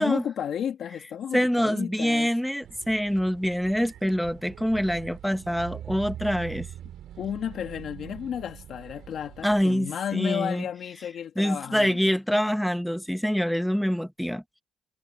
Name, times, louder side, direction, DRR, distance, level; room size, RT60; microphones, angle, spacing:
voice 1, 0.0-2.3 7.2-12.1, left 9 dB, 65° left, 2.3 m, -32 dB
voice 2, 1.3-6.7 9.4-10.6 11.4-14.4, equal, ahead, 1.6 m, -25 dB
sound 1, 2.6-9.7, right 11 dB, 75° right, 3.2 m, -43 dB
cardioid pair, 90°, 0 cm